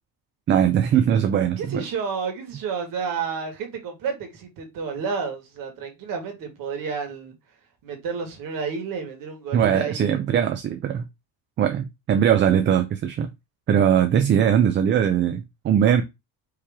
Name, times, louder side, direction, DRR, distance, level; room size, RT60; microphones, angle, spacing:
voice 1, 0.5-1.8 9.5-11.0 11.6-13.3 13.7-16.0, right 9 dB, 30° right, 0.4 m, -20 dB
voice 2, 1.6-7.3 7.8-10.2, right 5 dB, 55° right, 1.7 m, -31 dB
4.8 x 3.0 x 3.5 m
cardioid pair, 160°, 39 cm